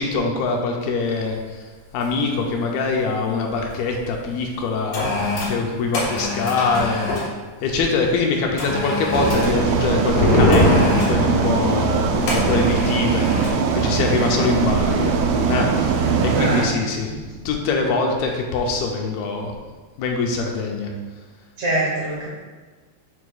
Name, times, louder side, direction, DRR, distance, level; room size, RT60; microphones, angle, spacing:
voice 1, 0.0-1.6 1.9-7.3 7.6-15.2 15.5-17.2 17.5-19.5 20.0-20.9, left 4 dB, 80° left, 1 dB, 2.4 m, -23 dB
sound 1, 1.2-1.4 2.0-2.3 2.6-3.7 4.4-7.3 8.6-9.6 10.5-11.2 12.3-13.6 13.9-14.2, left 2 dB, 60° left, 2.1 m, -28 dB
sound 2, 9.1-16.7, right 5 dB, 85° right, 2.0 m, -21 dB
sound 3, 9.5-16.5 16.8-16.9 17.2-17.7, left 1 dB, 40° left, 1.6 m, -24 dB
voice 2, 16.0-16.7 21.6-22.3, right 2 dB, 65° right, -6 dB, 2.0 m, -26 dB
7.0 x 6.3 x 2.3 m, 1.3 s
omnidirectional pair, 4.6 m